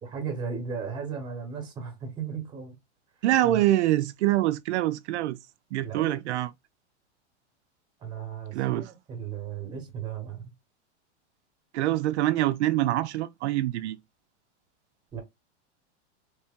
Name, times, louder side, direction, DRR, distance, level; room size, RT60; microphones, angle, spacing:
voice 1, 0.0-2.7 3.4-3.6 5.8-6.2 8.0-10.5 15.1-15.2, right 6 dB, 15° right, 0.9 m, -36 dB
voice 2, 3.2-5.4 5.7-6.5 8.5-8.9 11.7-14.0, right 14 dB, 75° right, 0.5 m, -25 dB
3.2 x 2.8 x 3.5 m
supercardioid pair, 170°, 35 cm